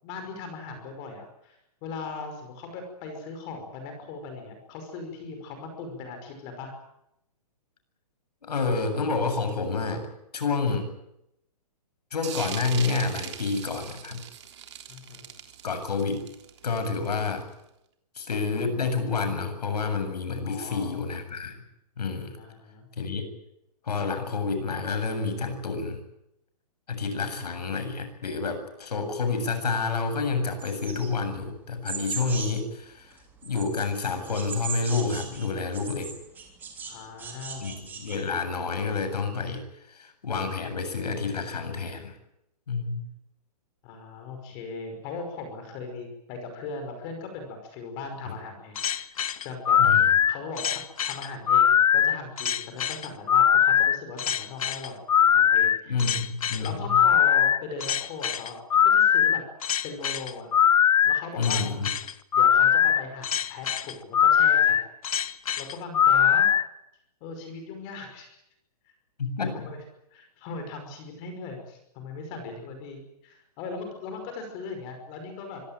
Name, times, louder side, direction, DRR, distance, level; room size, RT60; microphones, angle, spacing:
voice 1, 0.0-6.7 14.9-15.3 20.4-20.9 22.4-22.9 27.1-27.5 36.8-37.7 43.8-49.2 49.4-49.8 50.3-56.1 56.6-59.4 59.8-60.5 61.0-61.6 62.3-64.8 65.6-66.5 67.2-68.4 69.5-69.8 70.1-75.6, left 4 dB, 25° left, 6 dB, 5.4 m, -39 dB
voice 2, 8.4-10.1 10.3-10.9 12.1-14.2 15.6-16.3 16.6-17.5 18.2-21.6 22.0-22.3 23.0-23.3 23.8-26.0 26.9-36.1 37.6-42.1 42.7-43.1 49.8-50.1 55.9-57.0 61.3-61.9 69.2-69.7, left 4 dB, 90° left, 9 dB, 7.7 m, -29 dB
sound 1, 12.2-17.5, right 9 dB, 45° right, 3.4 m, -40 dB
sound 2, 30.6-32.7 33.1-36.9 37.2-38.2, right 6 dB, 10° right, 3.3 m, -38 dB
sound 3, 48.8-66.6, left 9 dB, 60° left, 1.2 m, -21 dB
25.5 x 17.5 x 9.1 m, 0.82 s
hypercardioid pair, 170°, 20 cm